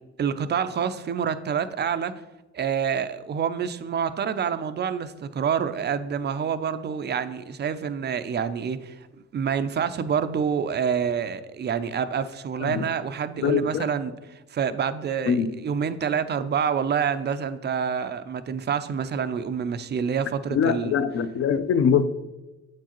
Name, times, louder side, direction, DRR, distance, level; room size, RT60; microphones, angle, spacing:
voice 1, 0.2-2.1 2.5-9.0 9.3-20.9, right 7 dB, 35° right, 0.4 m, -27 dB
voice 2, 13.4-13.9 15.3-15.5 20.5-22.2, left 7 dB, 45° left, 0.5 m, -23 dB
7.7 x 4.6 x 2.9 m
cardioid pair, 90°, 30 cm